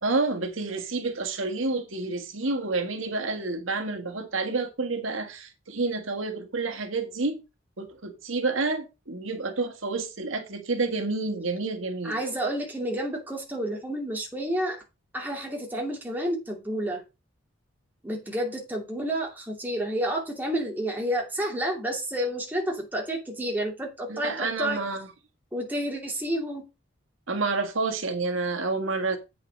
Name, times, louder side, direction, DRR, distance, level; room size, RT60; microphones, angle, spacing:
voice 1, 0.0-7.4 7.8-12.2 24.1-25.1 27.3-29.2, right 3 dB, 80° right, 1.7 m, -29 dB
voice 2, 12.0-14.8 15.1-17.0 18.0-24.8 25.5-26.6, right 1 dB, 10° right, 2.6 m, -30 dB
8.5 x 5.5 x 5.2 m
head